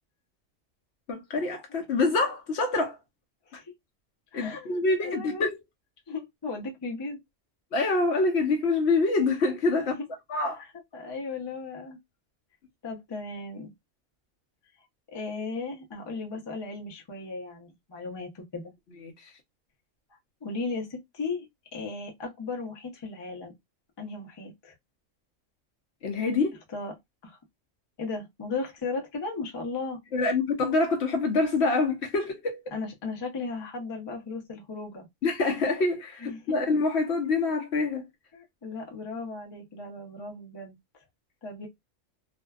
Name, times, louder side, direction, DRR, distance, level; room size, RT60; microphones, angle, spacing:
voice 1, 1.1-3.0 3.5-3.6 4.3-5.6 7.7-9.9 10.3-10.6 19.0-19.3 26.0-26.6 30.1-32.6 35.2-38.1, left 3 dB, 65° left, 0.9 m, -26 dB
voice 2, 4.3-5.4 6.1-7.2 10.0-10.1 10.6-12.0 12.8-13.7 15.1-18.7 20.4-21.5 21.7-23.5 24.0-24.7 26.7-26.9 27.2-27.4 28.0-30.0 32.7-35.1 36.2-36.6 38.3-40.8 41.4-41.7, left 3 dB, 30° left, 0.5 m, -36 dB
2.5 x 2.2 x 2.2 m
omnidirectional pair, 1.3 m